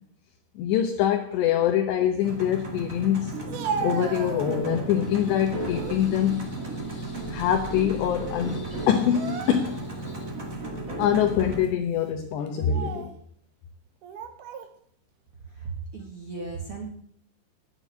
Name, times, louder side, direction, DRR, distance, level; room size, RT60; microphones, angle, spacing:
voice 1, 0.6-3.3 3.8-10.2 11.0-13.1, left 10 dB, 75° left, 3 dB, 3.0 m, -25 dB
sound 1, 2.2-11.6, right 1 dB, 35° right, 1.3 m, -34 dB
Speech, 3.3-5.0 5.5-6.0 6.5-7.7 8.0-8.2 9.0-9.9 10.5-10.6 11.4-11.7 12.5-13.2 14.0-14.7, right 6 dB, 80° right, 1.8 m, -36 dB
voice 2, 15.5-16.9, right 4 dB, 50° right, 0 dB, 1.6 m, -36 dB
9.9 x 9.1 x 8.5 m, 0.62 s
omnidirectional pair, 5.4 m